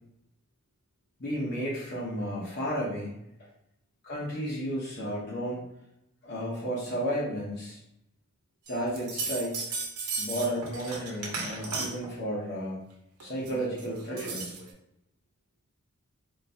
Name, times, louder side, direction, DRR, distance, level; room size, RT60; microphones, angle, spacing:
voice 1, 1.2-3.2 4.1-5.6 6.2-7.8 8.7-9.6 10.2-12.8 13.2-14.5, equal, 45° left, -5 dB, 0.9 m, -32 dB
sound 1, 8.7-12.1 13.2-14.7, right 4 dB, 85° right, 0.9 m, -35 dB
3.9 x 3.0 x 2.7 m, 0.83 s
head